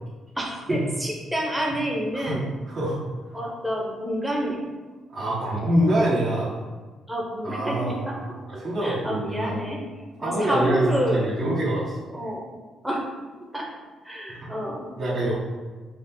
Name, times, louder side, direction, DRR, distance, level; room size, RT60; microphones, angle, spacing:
voice 1, 0.3-2.5 3.3-4.6 7.1-9.9 10.2-11.4 12.1-12.5 12.8-13.1 13.5-13.7 14.0-14.9, equal, 5° right, -2 dB, 0.9 m, -28 dB
voice 2, 2.7-3.0 5.1-6.5 7.4-8.0 8.5-9.6 10.2-12.0 15.0-15.3, right 1 dB, 50° right, -11 dB, 1.3 m, -25 dB
5.2 x 2.0 x 3.8 m, 1.3 s
cardioid pair, 90°, 0 cm